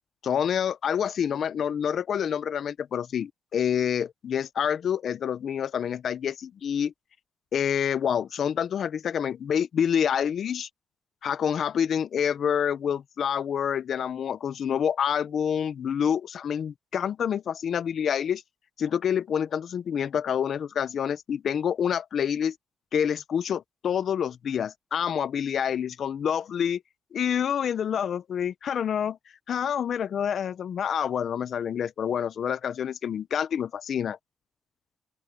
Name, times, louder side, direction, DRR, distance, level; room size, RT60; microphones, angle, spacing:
voice 1, 0.2-6.9 7.5-10.7 11.2-18.4 18.8-22.5 22.9-26.8 27.1-29.2 29.5-34.2, left 8 dB, 65° left, 0.9 m, -27 dB
open air
cardioid pair, 65°, 0 cm